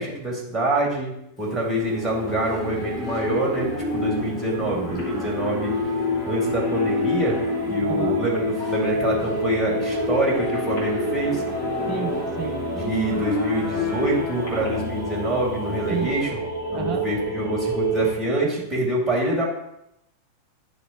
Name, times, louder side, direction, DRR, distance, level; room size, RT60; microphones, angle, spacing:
voice 1, 0.0-5.8 6.3-7.4 7.7-11.4 12.7-16.4 16.7-19.5, right 1 dB, 10° right, -3 dB, 2.0 m, -25 dB
Livestock farm animals working animals, 1.4-16.1, left 1 dB, 20° left, 1.7 m, -33 dB
sound 1, 1.8-15.9, right 1 dB, 55° left, 2.3 m, -43 dB
sound 2, 1.9-18.1, left 1 dB, 90° left, 1.4 m, -29 dB
voice 2, 7.9-8.2 11.9-12.6 15.9-16.2 16.7-17.0, right 6 dB, 30° right, 3 dB, 0.7 m, -30 dB
10.0 x 4.1 x 2.8 m, 0.80 s
figure-of-eight pair, 90°, 0 cm